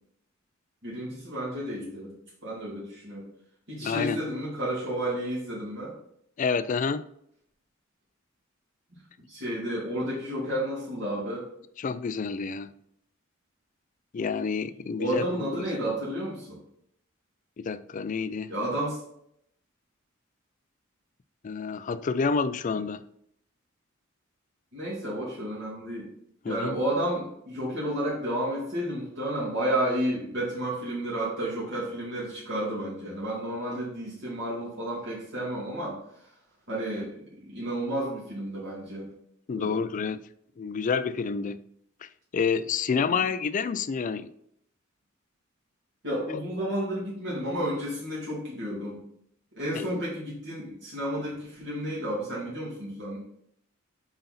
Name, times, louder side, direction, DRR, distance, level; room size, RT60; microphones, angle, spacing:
voice 1, 0.8-2.1 2.4-3.3 3.7-5.9 9.3-11.5 15.0-16.6 18.5-19.0 24.7-26.1 26.4-36.3 36.7-39.1 39.5-39.7 43.0-43.2 46.0-49.0 49.6-53.2, right 1 dB, 60° right, 2.4 m, -31 dB
voice 2, 3.8-4.2 6.4-7.0 11.8-12.7 14.1-15.6 17.6-18.5 21.4-23.0 26.4-26.8 39.5-40.2 40.6-41.6 42.0-44.3 49.7-50.0, left 5 dB, 40° left, 0.3 m, -29 dB
7.8 x 4.0 x 4.1 m
head